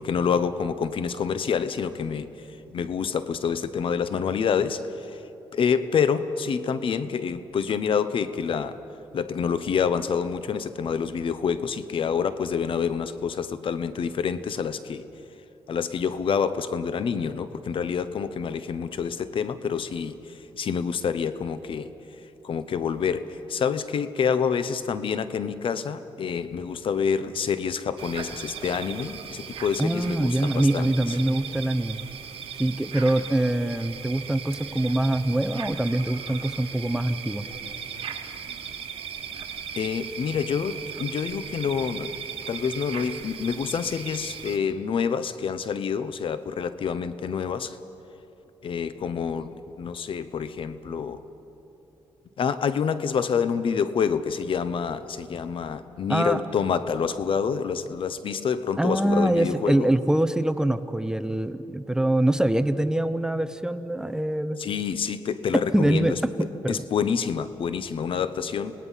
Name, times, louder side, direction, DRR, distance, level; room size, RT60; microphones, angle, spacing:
voice 1, 0.0-2.3 2.7-5.2 5.5-8.8 9.1-15.0 15.7-20.1 20.5-21.9 22.4-31.3 39.8-42.1 42.5-47.8 48.6-51.2 52.4-59.9 64.6-66.2 66.7-68.7, left 6 dB, 60° left, 13 dB, 0.9 m, -27 dB
sound 1, 28.0-44.6, right 7 dB, 75° right, 1.5 m, -38 dB
voice 2, 29.8-32.0 32.6-37.4 56.1-56.4 58.8-64.6 65.7-66.8, right 1 dB, 5° right, 11 dB, 0.7 m, -24 dB
26.5 x 19.0 x 5.7 m, 2.9 s
cardioid pair, 90°, 10 cm